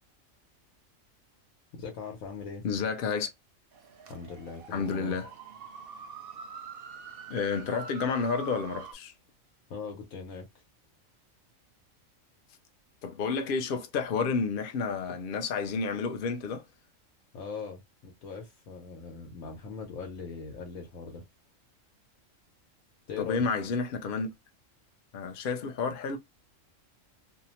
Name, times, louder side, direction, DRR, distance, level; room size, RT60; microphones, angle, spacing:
voice 1, 1.8-2.6 4.1-5.2 9.7-10.5 17.3-21.2 23.1-23.4, left 5 dB, 85° left, 1.1 m, -40 dB
voice 2, 2.6-3.3 4.7-5.3 7.3-9.1 13.0-16.6 23.2-24.3 25.1-26.2, left 5 dB, 55° left, 0.6 m, -30 dB
sound 1, 3.7-8.9, right 6 dB, 60° right, 0.6 m, -45 dB
2.7 x 2.1 x 2.8 m
omnidirectional pair, 1.4 m